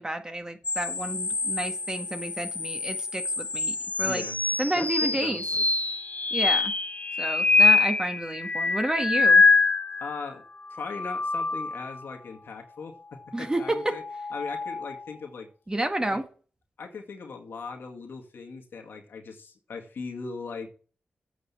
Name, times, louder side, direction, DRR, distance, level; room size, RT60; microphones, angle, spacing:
voice 1, 0.0-4.2 4.6-5.4 6.3-6.7 7.2-9.4 13.3-14.0 15.7-16.3, right 1 dB, 20° right, 6 dB, 1.6 m, -30 dB
sound 1, 0.6-10.2 10.7-12.0 13.8-15.0, left 4 dB, 45° left, 0.7 m, -25 dB
voice 2, 4.0-4.4 4.8-5.6 10.0-10.4 10.7-14.0 14.3-15.5 16.1-16.2 16.8-20.7, left 4 dB, 85° left, 2 dB, 1.9 m, -39 dB
8.2 x 5.1 x 6.9 m, 0.38 s
cardioid pair, 65°, 4 cm